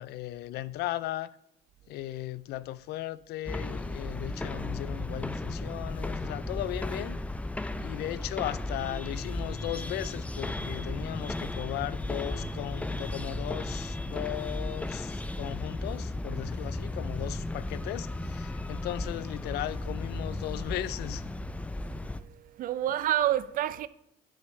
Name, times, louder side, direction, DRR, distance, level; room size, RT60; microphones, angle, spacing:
voice 1, 0.0-1.3 1.9-7.2 7.8-21.3, left 14 dB, 75° left, 0.4 m, -37 dB
Ambience Residential, 3.5-22.2, left 2 dB, 10° left, 0.4 m, -35 dB
voice 2, 21.9-23.9, right 12 dB, 55° right, 0.5 m, -29 dB
10.5 x 6.4 x 3.2 m
cardioid pair, 110°, 17 cm